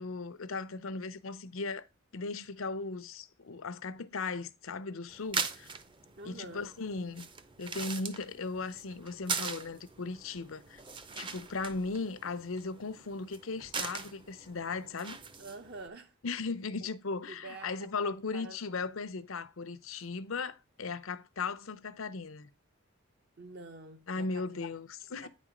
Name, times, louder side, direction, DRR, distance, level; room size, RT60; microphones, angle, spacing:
voice 1, 0.0-1.9 2.1-5.7 6.2-7.3 7.6-10.8 11.1-15.2 16.2-22.5 24.1-25.3, left 4 dB, 75° left, 0.7 m, -37 dB
sound 1, 5.1-15.9, right 5 dB, 25° right, 0.6 m, -41 dB
voice 2, 6.2-6.7 15.4-16.2 16.8-16.9 17.3-18.6 20.0-20.1 23.4-24.5 25.2-25.3, right 3 dB, 50° right, 0.8 m, -47 dB
9.2 x 4.2 x 5.0 m
head